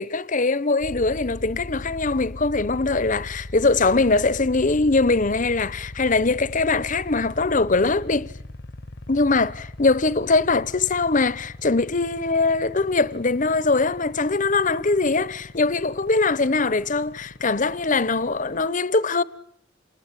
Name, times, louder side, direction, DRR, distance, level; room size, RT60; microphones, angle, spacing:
voice 1, 0.0-8.3 9.1-19.2, left 3 dB, 40° left, 1.0 m, -22 dB
sound 1, 0.8-18.7, left 1 dB, 65° left, 1.2 m, -40 dB
28.5 x 21.0 x 8.8 m
head